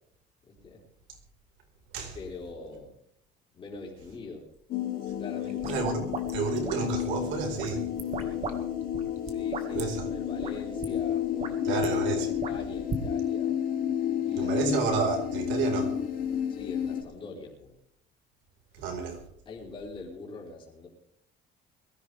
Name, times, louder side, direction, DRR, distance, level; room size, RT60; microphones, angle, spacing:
voice 1, 0.5-0.8 2.1-3.0 3.5-4.5 5.2-5.7 8.1-8.8 9.2-13.6 13.9-14.6 16.5-17.7 19.5-20.9, left 3 dB, 25° left, 4.0 m, -43 dB
sound 1, 4.7-17.0, left 10 dB, 45° left, 2.5 m, -31 dB
sound 2, 5.4-7.1 7.6-8.6 8.8-9.8 10.4-10.5 10.8-10.9 11.2-11.9 12.4-13.0, right 4 dB, 35° right, 1.8 m, -37 dB
voice 2, 5.7-6.0 6.3-7.9 9.7-10.1 11.6-12.3 14.4-16.0 18.8-19.2, right 6 dB, 70° right, 4.8 m, -30 dB
22.0 x 14.5 x 3.5 m
cardioid pair, 175°, 20 cm